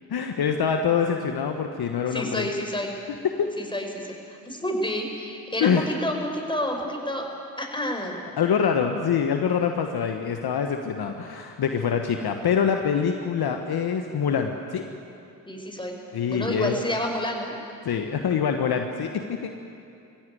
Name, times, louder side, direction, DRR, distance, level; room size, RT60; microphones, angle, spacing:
voice 1, 0.1-2.5 3.2-3.5 5.6-5.9 8.4-14.8 16.1-16.8 17.8-19.6, left 7 dB, 55° left, 5 dB, 1.4 m, -25 dB
voice 2, 2.1-2.9 3.6-7.2 7.6-8.2 15.5-16.0 16.3-17.5, left 1 dB, 10° left, 1 dB, 5.5 m, -29 dB
20.5 x 16.0 x 9.4 m, 2.6 s
hypercardioid pair, 40°, 45 cm